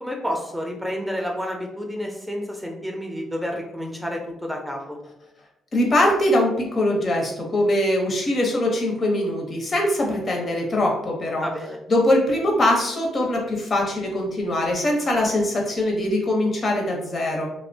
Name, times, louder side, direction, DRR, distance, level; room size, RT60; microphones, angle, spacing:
voice 1, 0.0-5.0 11.4-11.8, equal, 5° right, 0 dB, 0.4 m, -30 dB
voice 2, 5.7-11.5 11.9-17.5, left 1 dB, 40° left, 1 dB, 0.7 m, -22 dB
2.9 x 2.0 x 2.6 m, 0.85 s
cardioid pair, 90°, 0 cm